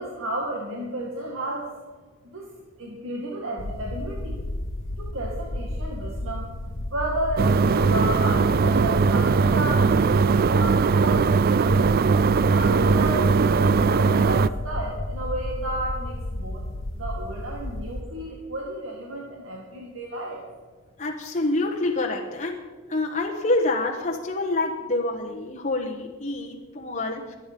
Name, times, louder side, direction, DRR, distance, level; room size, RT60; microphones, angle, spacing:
voice 1, 0.0-1.7 2.3-2.5 2.8-4.4 5.0-6.5 6.9-9.9 10.5-11.9 12.3-16.6 17.0-20.4, right 1 dB, 75° right, -1 dB, 2.1 m, -32 dB
sound 1, 3.6-18.0, left 1 dB, 65° left, 1.1 m, -33 dB
sound 2, 7.4-14.5, right 5 dB, 45° right, 0.4 m, -20 dB
voice 2, 21.0-22.6 22.9-27.3, left 2 dB, 35° left, 0 dB, 1.3 m, -27 dB
23.0 x 9.2 x 5.4 m, 1.4 s
head